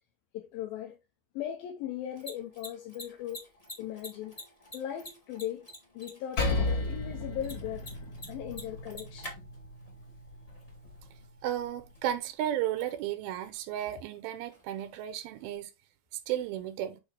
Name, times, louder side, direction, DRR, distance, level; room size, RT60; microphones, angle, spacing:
voice 1, 0.3-1.0 1.3-3.5 3.8-4.4 4.7-5.7 5.9-8.0 8.2-9.4, left 11 dB, 80° left, 2.6 m, -38 dB
Mechanisms, 1.9-15.6, left 1 dB, 20° left, 0.9 m, -51 dB
Percussion, 6.4-11.2, left 2 dB, 55° left, 3.7 m, -34 dB
voice 2, 11.4-15.7 16.3-17.0, right 11 dB, 90° right, 2.7 m, -33 dB
8.1 x 3.6 x 3.3 m
omnidirectional pair, 4.2 m